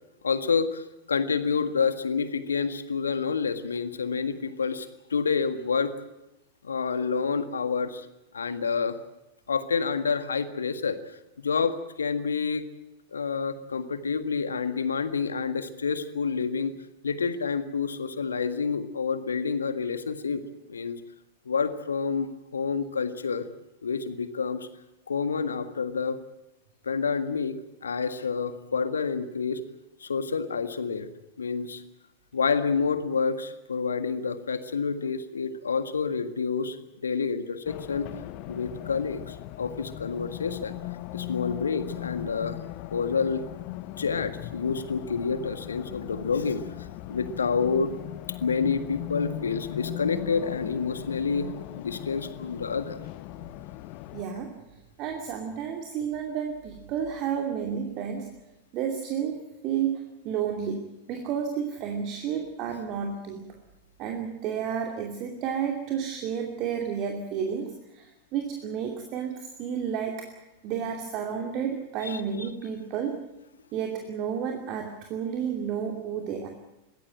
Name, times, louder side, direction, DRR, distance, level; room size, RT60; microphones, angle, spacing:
voice 1, 0.2-5.9 6.6-8.1 8.3-9.0 9.5-11.0 11.4-12.6 13.1-16.8 17.0-20.4 20.7-21.0 21.5-23.5 23.8-24.7 25.1-26.2 26.8-29.6 30.0-31.1 31.4-31.8 32.3-36.8 37.0-38.1 38.5-40.8 41.1-42.6 42.9-43.4 44.0-47.9 48.4-51.5 51.8-53.0 72.0-72.5, left 5 dB, 70° left, 11 dB, 1.7 m, -28 dB
Race car auto racing, 37.7-54.2, left 17 dB, 45° left, 0.8 m, -38 dB
voice 2, 54.1-54.5 55.0-58.3 58.7-63.4 64.0-70.3 70.6-73.2 73.7-76.5, right 7 dB, 40° right, 3 dB, 2.6 m, -31 dB
22.5 x 16.5 x 9.1 m, 0.94 s
figure-of-eight pair, 90°, 0 cm